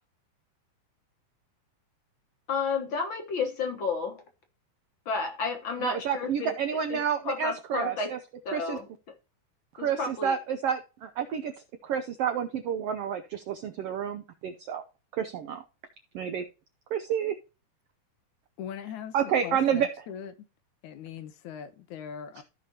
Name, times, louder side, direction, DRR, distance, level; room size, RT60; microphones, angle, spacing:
voice 1, 2.5-4.2 5.0-6.5 6.9-7.0 7.2-8.1 8.4-8.9 9.8-10.3, left 4 dB, 55° left, 1.5 m, -31 dB
voice 2, 5.8-8.2 8.5-8.8 9.8-11.5 11.8-14.8 15.1-15.6 16.1-16.4 16.9-17.3 19.1-19.9, right 8 dB, 80° right, 1.4 m, -29 dB
voice 3, 18.6-19.2 19.4-20.5 20.8-22.4, left 8 dB, 80° left, 2.2 m, -40 dB
15.0 x 5.1 x 2.8 m
omnidirectional pair, 3.6 m